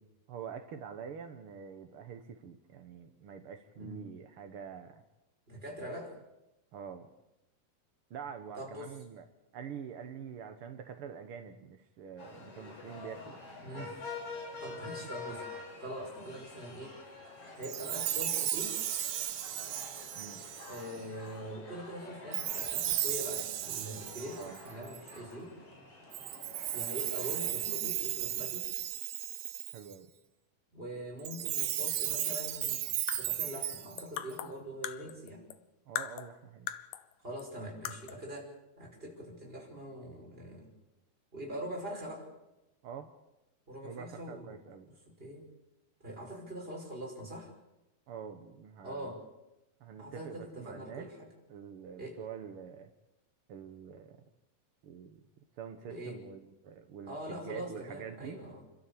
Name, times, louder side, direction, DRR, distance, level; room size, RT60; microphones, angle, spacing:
voice 1, 0.3-5.0 6.7-7.1 8.1-9.2 9.5-13.4 13.7-13.9 15.0-15.1 20.1-20.4 24.3-24.6 29.7-30.1 35.9-36.7 42.8-43.1 43.8-44.9 48.1-49.1 49.8-51.1 51.5-52.9 53.5-54.2 54.8-55.2 55.6-58.4, right 7 dB, 65° right, 6 dB, 1.3 m, -46 dB
voice 2, 5.5-6.1 8.5-8.9 13.6-14.1 14.6-15.5 15.8-17.0 17.6-18.8 20.6-25.5 26.7-28.7 30.7-32.8 33.1-35.4 37.2-40.7 41.3-42.3 43.7-44.6 45.2-45.5 46.0-47.5 48.8-49.2 50.0-51.3 52.0-52.2 55.8-56.2 57.0-58.6, equal, 15° right, -1 dB, 5.5 m, -43 dB
sound 1, 12.2-27.5, left 3 dB, 55° left, 5.4 m, -47 dB
Chime, 17.6-21.0 22.3-25.2 26.1-29.9 31.2-34.3, right 12 dB, 85° right, 2.9 m, -35 dB
sound 2, 32.9-35.6 36.0-37.1 37.4-37.5 37.9-38.3, left 12 dB, 75° left, 2.4 m, -40 dB
29.0 x 13.0 x 8.6 m, 0.95 s
omnidirectional pair, 4.1 m